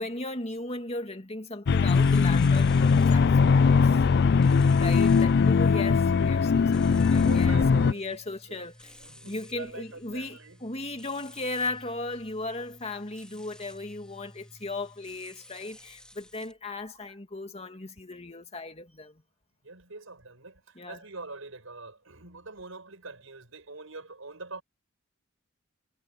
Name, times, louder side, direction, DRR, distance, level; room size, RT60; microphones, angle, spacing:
voice 1, 0.0-4.0 4.7-7.6 7.9-9.0 9.2-19.2 20.7-21.0, left 2 dB, 30° left, 2.6 m, -37 dB
sound 1, 1.7-7.9, left 5 dB, 55° left, 0.4 m, -20 dB
sound 2, 1.8-16.5, left 1 dB, 5° left, 2.8 m, -51 dB
voice 2, 7.2-8.2 8.5-8.6 9.0-10.6 19.6-24.6, right 3 dB, 80° right, 5.6 m, -43 dB
head